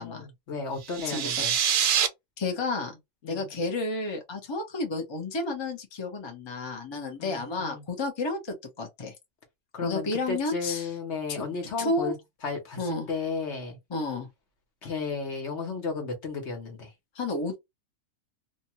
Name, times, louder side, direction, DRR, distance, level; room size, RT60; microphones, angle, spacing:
voice 1, 0.0-1.5 3.2-3.5 7.2-7.8 9.7-12.1 12.4-13.8 14.8-16.9, left 4 dB, 55° left, 1.2 m, -34 dB
sound 1, 0.8-2.1, right 9 dB, 65° right, 1.0 m, -25 dB
voice 2, 1.0-1.5 2.4-2.9 3.2-9.1 9.8-10.9 11.3-11.5 11.8-12.1 12.8-13.1 13.9-14.3 17.1-17.5, left 2 dB, 25° left, 0.6 m, -31 dB
2.7 x 2.2 x 2.9 m
omnidirectional pair, 1.6 m